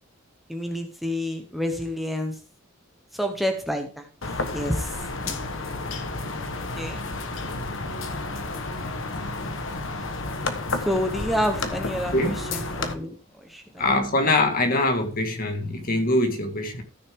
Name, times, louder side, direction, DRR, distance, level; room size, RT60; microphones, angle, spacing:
voice 1, 0.5-2.4 3.1-4.1 4.5-5.4 6.6-7.0 10.7-13.9, equal, ahead, 1.1 m, -29 dB
sound 1, 4.2-12.9, left 2 dB, 70° left, 1.3 m, -31 dB
voice 2, 13.8-16.8, left 2 dB, 45° left, 1.8 m, -23 dB
14.0 x 6.4 x 3.7 m
head